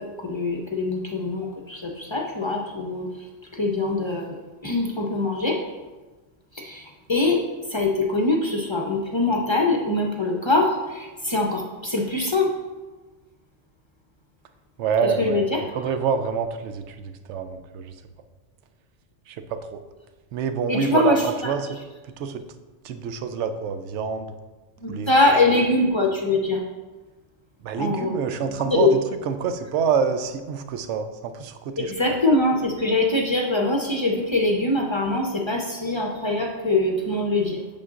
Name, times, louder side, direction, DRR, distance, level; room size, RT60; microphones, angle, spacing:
voice 1, 0.0-3.3 3.5-4.3 4.6-5.6 6.5-12.5 15.2-15.6 20.7-21.2 24.8-26.6 27.8-28.1 28.7-28.9 31.8-37.6, left 2 dB, 30° left, 0 dB, 0.6 m, -23 dB
voice 2, 14.8-15.5 15.7-18.0 19.3-19.8 20.3-21.8 22.2-22.4 22.8-24.3 24.9-25.1 27.6-29.0 29.3-31.9, right 6 dB, 70° right, 8 dB, 0.9 m, -26 dB
8.6 x 6.7 x 2.4 m, 1.2 s
omnidirectional pair, 1.3 m